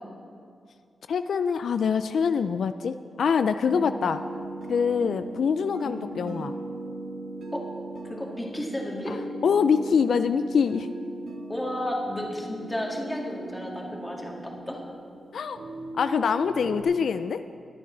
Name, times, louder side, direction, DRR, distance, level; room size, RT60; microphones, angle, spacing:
voice 1, 1.1-4.2 4.7-6.5 9.1-10.9 15.3-15.6 16.0-17.4, left 6 dB, 75° left, 10 dB, 0.3 m, -25 dB
sound 1, 3.7-16.8, right 2 dB, 85° right, 1.4 m, -38 dB
voice 2, 8.0-9.2 11.5-14.8, left 1 dB, 10° left, -1 dB, 2.0 m, -33 dB
21.5 x 8.6 x 3.9 m, 2.4 s
wide cardioid pair, 115°, 0 cm